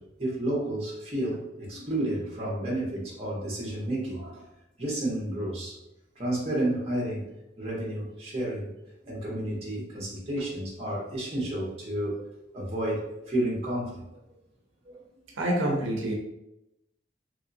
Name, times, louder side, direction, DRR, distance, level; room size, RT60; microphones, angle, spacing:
voice 1, 0.0-4.4 4.8-5.8 6.2-7.3 7.6-8.7 9.0-14.0 14.8-15.0, right 1 dB, 30° right, -4 dB, 1.0 m, -31 dB
voice 2, 15.4-16.1, right 1 dB, 85° right, -1 dB, 0.6 m, -26 dB
3.0 x 2.7 x 2.6 m, 0.87 s
head